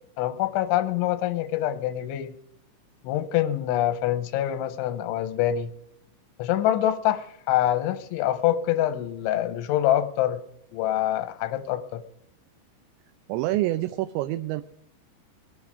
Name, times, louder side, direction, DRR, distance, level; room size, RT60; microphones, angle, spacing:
voice 1, 0.2-2.3 3.0-5.7 6.4-10.4 10.7-12.0, left 12 dB, 85° left, 11 dB, 3.3 m, -25 dB
voice 2, 13.3-14.6, right 16 dB, 80° right, 10 dB, 2.7 m, -26 dB
22.0 x 11.0 x 3.6 m, 0.74 s
omnidirectional pair, 5.5 m